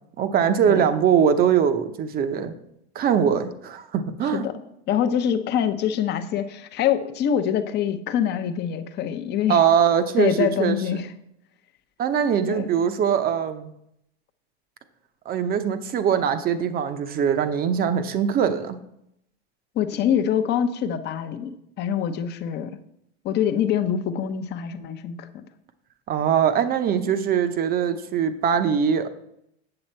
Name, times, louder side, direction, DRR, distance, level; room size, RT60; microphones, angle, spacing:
voice 1, 0.2-2.5 2.9-4.5 9.5-10.8 12.0-13.7 15.3-18.8 26.1-29.1, right 8 dB, 30° right, 9 dB, 0.8 m, -22 dB
voice 2, 4.9-9.6 10.2-11.1 12.5-12.7 19.8-22.8 23.2-25.4, left 9 dB, 30° left, 8 dB, 0.8 m, -25 dB
8.8 x 7.0 x 4.4 m, 0.77 s
supercardioid pair, 135°, 32 cm